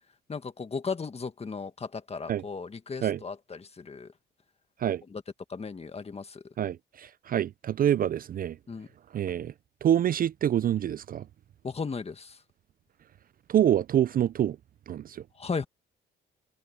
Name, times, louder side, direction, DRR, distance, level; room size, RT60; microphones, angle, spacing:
voice 1, 0.3-4.1 5.1-5.2 5.5-6.4 8.7-8.9 11.6-12.4 15.4-15.7, left 5 dB, 30° left, 1.7 m, -36 dB
voice 2, 6.6-8.6 9.1-9.5 9.8-11.2 13.5-14.6 14.9-15.2, right 10 dB, 45° right, 0.4 m, -26 dB
cardioid pair, 90°, 20 cm